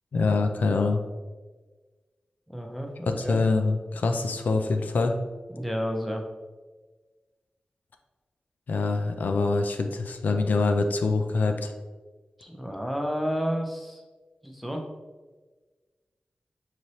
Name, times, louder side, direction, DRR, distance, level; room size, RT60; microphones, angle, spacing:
voice 1, 0.1-1.0 3.1-5.1 8.7-11.7, left 3 dB, 80° left, 6 dB, 0.3 m, -25 dB
voice 2, 2.5-3.4 5.5-6.2 12.4-14.0 14.4-14.8, equal, ahead, 2 dB, 0.6 m, -31 dB
5.0 x 3.1 x 2.7 m, 1.3 s
wide cardioid pair, 100°, 3 cm